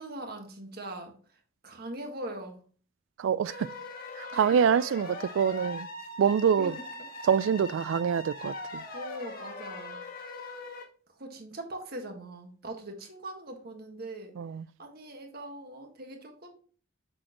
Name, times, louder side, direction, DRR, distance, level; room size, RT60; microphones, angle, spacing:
voice 1, 0.0-2.6 4.3-4.6 6.6-7.1 8.9-10.0 11.1-14.3 14.8-16.5, right 1 dB, 50° right, 1.5 m, -41 dB
voice 2, 3.2-3.7 4.2-5.9 6.2-6.7 7.3-8.8 14.4-14.6, right 7 dB, 75° right, 0.3 m, -25 dB
sound 1, 3.5-10.8, left 2 dB, 45° left, 1.6 m, -41 dB
7.6 x 6.4 x 3.0 m
head